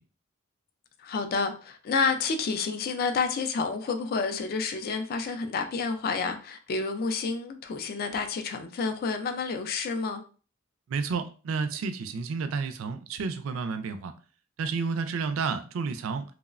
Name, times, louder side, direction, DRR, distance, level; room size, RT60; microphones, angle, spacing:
voice 1, 1.0-10.2, left 4 dB, 50° left, 0.3 m, -29 dB
voice 2, 10.9-14.1 14.6-16.2, right 5 dB, 75° right, 0.3 m, -31 dB
3.0 x 2.0 x 2.3 m
head